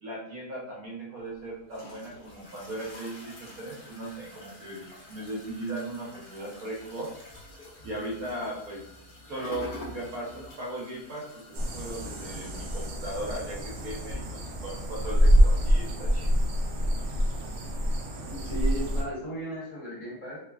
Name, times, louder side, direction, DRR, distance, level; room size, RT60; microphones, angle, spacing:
voice 1, 0.0-7.1 7.8-8.8 9.3-16.3, right 1 dB, 65° right, -4 dB, 1.2 m, -38 dB
sound 1, 1.2-12.9, left 1 dB, 75° left, 0.4 m, -48 dB
sound 2, 11.5-19.0, equal, 85° right, 0.5 m, -26 dB
voice 2, 18.3-20.4, right 1 dB, 55° left, -6 dB, 1.3 m, -35 dB
3.1 x 2.2 x 2.2 m, 0.74 s
omnidirectional pair, 1.7 m